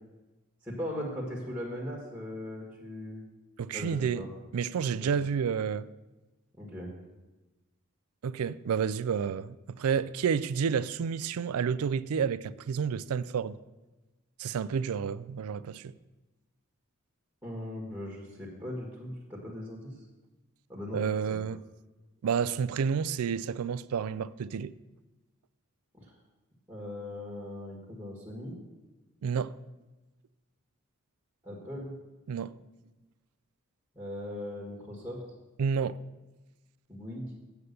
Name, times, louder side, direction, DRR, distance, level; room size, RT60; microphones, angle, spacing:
voice 1, 0.6-3.2 3.7-4.3 5.0-5.1 6.6-6.9 17.4-19.9 20.7-21.4 25.9-26.1 26.7-28.5 31.4-31.9 33.9-35.2 36.9-37.3, left 1 dB, 10° right, 1.6 m, -39 dB
voice 2, 3.6-4.2 4.5-5.9 8.2-13.6 14.4-15.9 20.9-21.6 22.2-24.7 29.2-29.5 32.3-32.5 35.6-36.0, right 6 dB, 80° right, 0.4 m, -30 dB
8.1 x 7.7 x 6.6 m
head